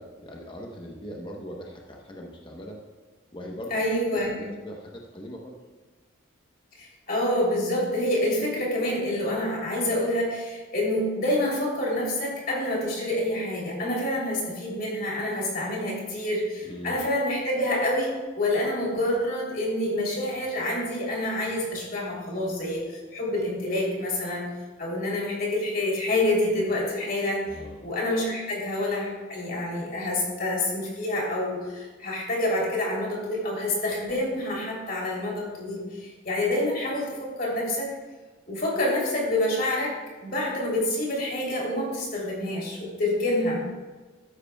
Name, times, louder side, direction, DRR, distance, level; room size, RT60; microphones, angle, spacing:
voice 1, 0.0-2.8 3.3-3.7 4.1-5.5 16.6-17.0 27.4-27.9, equal, 25° left, 0 dB, 0.9 m, -40 dB
voice 2, 3.7-4.4 6.8-37.9 38.5-43.7, left 1 dB, 45° left, -3 dB, 3.1 m, -27 dB
13.0 x 10.5 x 2.3 m, 1.3 s
head